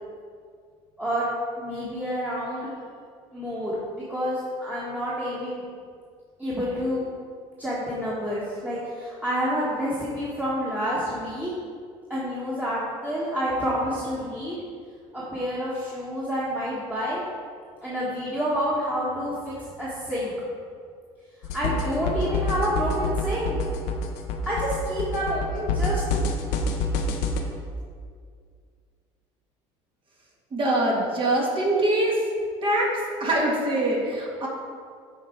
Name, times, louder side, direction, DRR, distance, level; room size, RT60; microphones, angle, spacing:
voice 1, 1.6-2.7 3.3-5.6 6.4-7.0 7.6-11.5 12.1-14.6 15.1-17.2 17.8-20.3 21.5-23.6 24.4-26.3, equal, 10° right, -8 dB, 1.6 m, -28 dB
sound 1, 21.4-27.4, left 2 dB, 80° left, 0.8 m, -27 dB
voice 2, 30.5-32.2 32.6-32.9 33.2-34.5, right 1 dB, 40° right, -2 dB, 1.8 m, -23 dB
7.8 x 4.4 x 4.6 m, 2.1 s
supercardioid pair, 90°, 13 cm